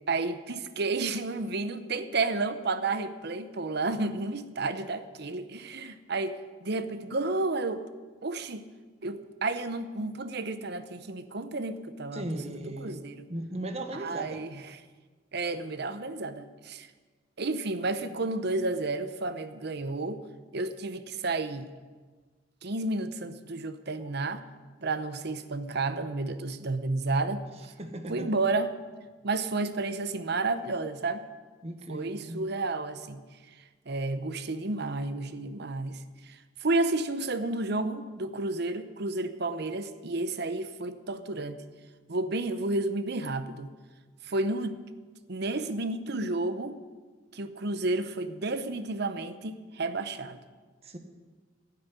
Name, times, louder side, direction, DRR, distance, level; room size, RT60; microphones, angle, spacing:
voice 1, 0.1-7.9 8.2-8.7 9.0-13.3 13.9-14.8 15.3-16.9 17.4-20.2 20.5-21.7 22.6-24.5 24.8-27.7 28.1-28.7 29.2-31.3 31.9-33.2 33.9-41.6 42.1-43.7 44.2-44.8 45.3-46.8 47.3-50.4, right 2 dB, 60° right, 11 dB, 0.9 m, -31 dB
voice 2, 12.1-13.0 13.3-14.4 24.0-24.1 27.8-28.3 31.6-32.4 50.8-51.0, right 1 dB, 35° right, 6 dB, 1.3 m, -37 dB
12.0 x 9.6 x 9.5 m, 1.4 s
head